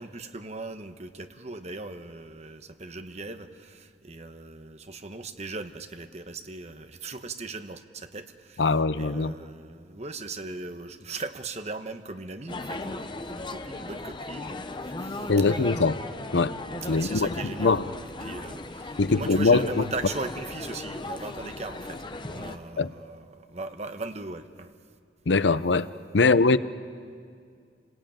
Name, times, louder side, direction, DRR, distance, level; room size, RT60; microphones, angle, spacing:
voice 1, 0.0-15.8 16.8-24.7 26.2-26.3, right 3 dB, 35° right, 8 dB, 1.1 m, -39 dB
voice 2, 8.6-9.3 15.3-16.0 16.3-16.5 16.9-17.3 17.6-17.8 19.0-19.8 22.8-22.9 25.3-25.9 26.1-26.6, left 3 dB, 75° left, 14 dB, 0.7 m, -22 dB
sound 1, 12.5-22.6, left 2 dB, 25° left, 0.9 m, -37 dB
29.0 x 20.5 x 9.0 m, 2.3 s
head